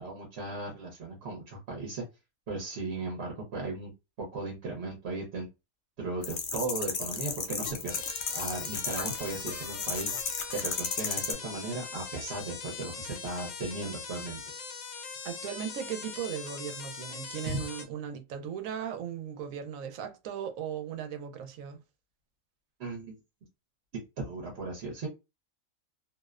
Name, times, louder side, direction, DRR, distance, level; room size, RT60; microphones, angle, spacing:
voice 1, 0.0-2.0 2.5-3.9 4.2-5.5 6.0-8.0 8.3-10.1 10.5-14.4 17.5-17.6 22.8-23.1 24.2-25.1, right 3 dB, 60° right, 0.9 m, -36 dB
sound 1, 6.2-11.3, left 5 dB, 65° left, 0.5 m, -34 dB
sound 2, 7.9-17.8, left 5 dB, 80° left, 1.0 m, -41 dB
voice 2, 15.2-21.8, right 8 dB, 85° right, 1.0 m, -37 dB
2.6 x 2.0 x 2.3 m
omnidirectional pair, 1.4 m